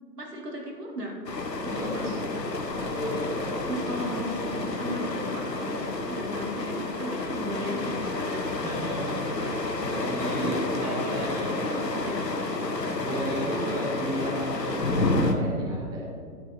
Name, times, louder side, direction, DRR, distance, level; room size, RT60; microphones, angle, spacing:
voice 1, 0.2-1.2 1.6-2.2 3.7-8.6 10.6-12.2, equal, 75° right, -1 dB, 2.9 m, -36 dB
sound 1, 1.3-15.3, left 2 dB, 90° left, 1.3 m, -30 dB
voice 2, 1.7-2.3 2.8-3.7 8.6-11.7 12.9-16.0, right 1 dB, 10° right, -3 dB, 0.9 m, -34 dB
12.5 x 11.0 x 2.9 m, 2.3 s
figure-of-eight pair, 135°, 48 cm